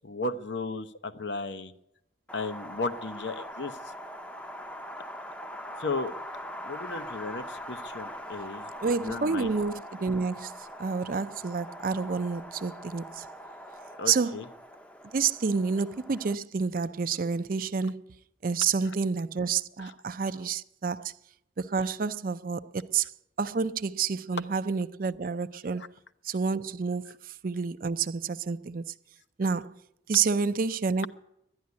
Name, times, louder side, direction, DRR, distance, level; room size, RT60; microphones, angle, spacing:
voice 1, 0.0-1.7 2.3-3.8 5.8-6.1 6.6-8.7 9.0-9.5 14.0-14.5, left 3 dB, 80° left, 0.8 m, -34 dB
Wind, 2.3-16.3, equal, 5° left, 0.5 m, -42 dB
voice 2, 8.8-13.3 14.1-14.4 15.1-18.0 18.4-21.1 21.6-23.1 23.4-25.9 26.2-28.9 29.4-29.8 30.1-31.1, right 5 dB, 50° right, 0.5 m, -29 dB
11.5 x 10.5 x 9.5 m
head